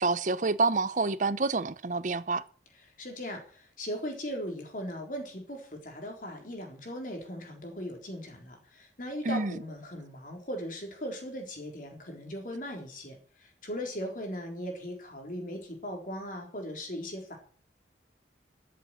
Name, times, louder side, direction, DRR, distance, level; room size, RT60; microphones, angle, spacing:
voice 1, 0.0-2.4 9.2-9.6, right 3 dB, 45° right, 0.7 m, -28 dB
voice 2, 3.0-17.4, equal, 45° left, 3.9 m, -38 dB
13.5 x 7.8 x 7.6 m
head